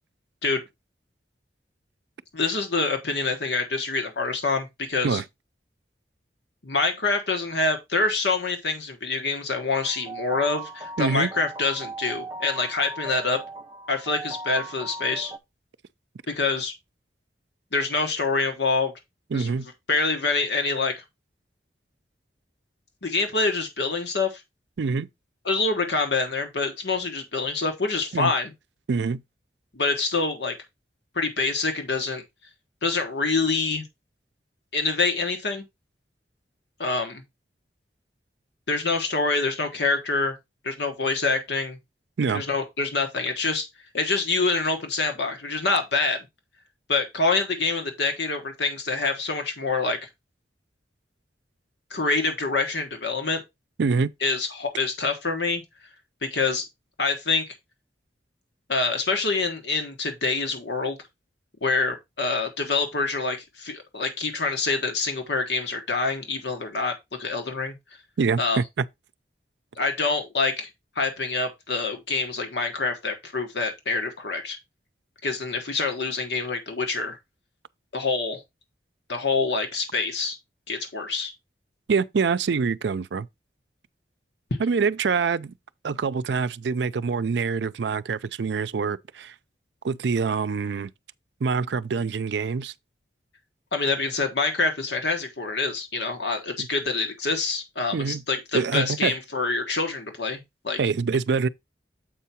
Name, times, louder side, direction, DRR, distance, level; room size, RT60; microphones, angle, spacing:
voice 1, 2.3-5.2 6.6-13.4 13.9-15.3 16.3-16.7 17.7-18.9 19.3-19.5 19.9-21.0 23.0-24.4 25.4-28.5 29.7-30.6 31.1-32.2 32.8-33.9 34.7-35.6 36.8-37.2 38.7-40.3 40.6-41.8 42.3-43.7 43.9-46.3 46.9-50.1 51.9-53.4 54.2-55.6 56.2-56.7 57.0-57.5 58.7-61.0 61.6-67.7 68.4-68.6 69.7-70.7 70.9-74.6 75.2-77.2 77.9-78.4 79.1-80.4 80.7-81.3 93.7-100.8, left 3 dB, 80° left, 1.3 m, -26 dB
sound 1, 9.7-15.4, right 1 dB, 20° right, 0.7 m, -38 dB
voice 2, 11.0-11.3 19.3-19.7 24.8-25.1 28.1-28.3 28.9-29.2 42.2-42.4 53.8-54.1 68.2-68.8 81.9-83.3 84.6-85.5 85.8-89.3 89.8-90.9 91.4-92.7 96.6-96.7 97.9-98.2 98.5-99.1 100.8-101.5, right 5 dB, 80° right, 0.4 m, -25 dB
7.6 x 4.6 x 4.2 m
head